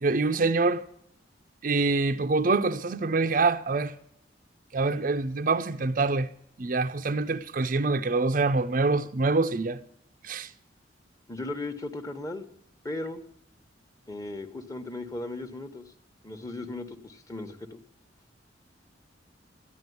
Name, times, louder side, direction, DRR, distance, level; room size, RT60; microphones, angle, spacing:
voice 1, 0.0-0.9 1.6-3.9 4.7-6.3 6.6-9.8 10.2-10.5, right 3 dB, 45° right, 0.5 m, -25 dB
voice 2, 11.3-12.5 12.8-13.2 14.1-15.8 16.2-17.8, left 2 dB, 20° left, 1.1 m, -36 dB
13.5 x 10.5 x 9.4 m
head